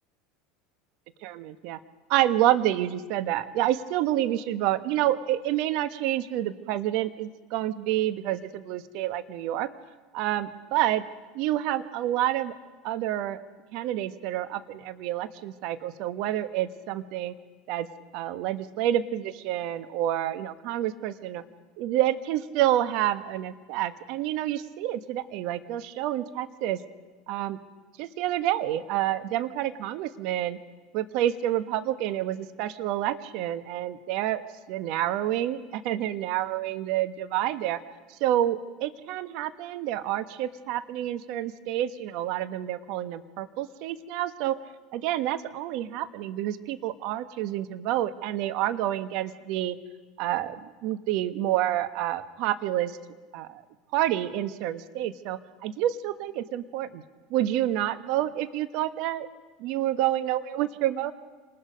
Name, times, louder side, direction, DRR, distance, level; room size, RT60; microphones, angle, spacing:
voice 1, 1.2-1.8 2.1-9.7 10.1-11.0 11.3-12.5 12.8-13.4 13.7-17.3 17.7-17.9 18.1-21.4 21.8-26.8 27.3-27.6 28.0-30.6 30.9-34.4 34.7-37.8 38.1-44.6 44.9-49.8 50.2-53.0 53.3-53.6 53.9-57.0 57.3-59.3 59.6-61.1, right 13 dB, 65° right, 11 dB, 1.2 m, -28 dB
27.5 x 20.0 x 5.2 m, 1.3 s
hypercardioid pair, 95°, 0 cm